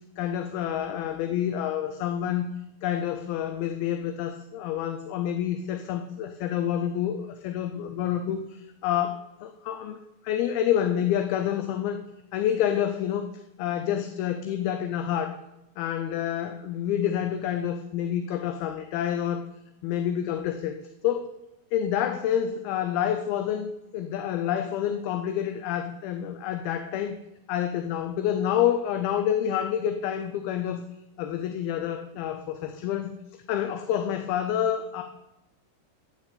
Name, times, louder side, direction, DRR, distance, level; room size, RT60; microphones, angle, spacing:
voice 1, 0.2-2.5 2.8-10.0 10.2-12.0 12.3-13.3 13.6-15.4 15.8-19.4 19.8-20.8 21.0-21.3 21.7-27.1 27.5-30.8 31.2-33.2 33.5-35.0, left 10 dB, 75° left, 7 dB, 2.4 m, -28 dB
14.5 x 6.5 x 8.4 m, 0.90 s
omnidirectional pair, 4.8 m